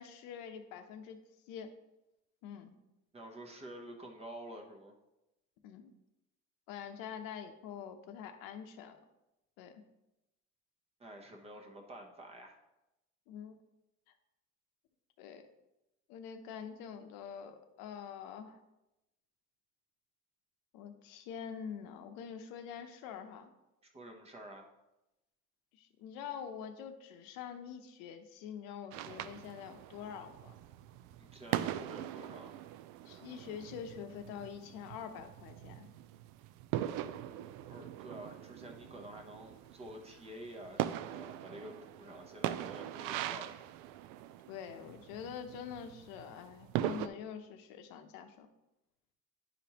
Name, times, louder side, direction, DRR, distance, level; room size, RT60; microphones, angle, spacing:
voice 1, 0.0-1.7 2.4-2.8 5.6-5.9 6.7-9.0 9.6-9.8 13.3-13.5 15.2-15.4 16.1-18.6 20.7-23.5 25.7-30.6 33.0-35.9 44.5-48.5, left 8 dB, 85° left, 6 dB, 0.9 m, -45 dB
voice 2, 3.1-4.9 11.0-12.6 23.9-24.7 31.2-32.5 37.7-43.5, right 1 dB, 20° right, 3 dB, 0.8 m, -49 dB
sound 1, 28.9-47.1, right 12 dB, 80° right, 0.5 m, -41 dB
9.5 x 5.1 x 2.9 m, 0.94 s
cardioid pair, 165°, 32 cm